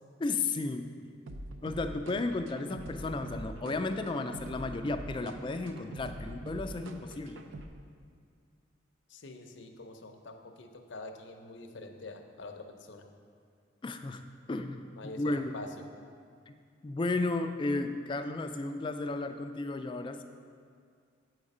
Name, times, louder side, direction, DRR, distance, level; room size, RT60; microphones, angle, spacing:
voice 1, 0.2-0.9 1.6-7.4 13.8-14.2 14.5-14.8 15.2-15.5 16.5-16.6 16.8-20.2, left 3 dB, 25° left, 7 dB, 0.3 m, -33 dB
sound 1, 1.3-7.7, right 1 dB, 85° right, 0.5 m, -44 dB
voice 2, 9.1-13.1 15.0-15.7, left 2 dB, 70° left, 5 dB, 0.6 m, -46 dB
7.8 x 4.9 x 5.3 m, 2.2 s
head